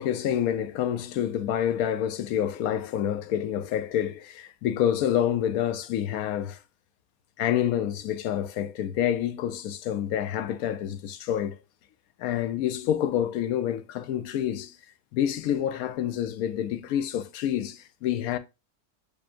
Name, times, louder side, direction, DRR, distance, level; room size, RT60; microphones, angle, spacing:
voice 1, 0.0-6.6 7.4-11.6 12.2-14.8 15.1-18.4, left 10 dB, 85° left, 1.1 m, -28 dB
6.9 x 3.1 x 2.4 m
omnidirectional pair, 1.5 m